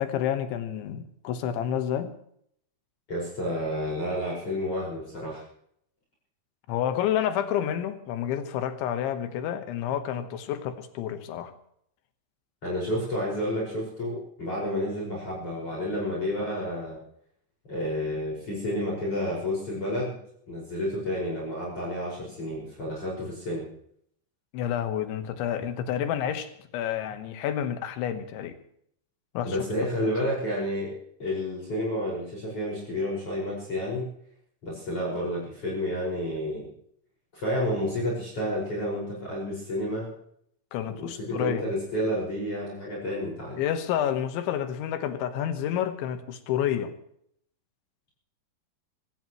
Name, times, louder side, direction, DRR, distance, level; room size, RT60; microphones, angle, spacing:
voice 1, 0.0-2.2 6.7-11.5 24.5-28.6 29.4-29.6 30.0-30.1 40.7-41.7 43.6-46.9, left 10 dB, 80° left, 3.6 m, -29 dB
voice 2, 3.1-5.4 12.6-17.0 17.7-20.2 20.5-23.7 29.4-34.1 34.6-36.7 37.3-40.1 40.9-43.6, equal, 30° left, 6.3 m, -30 dB
25.0 x 16.5 x 3.1 m
omnidirectional pair, 5.5 m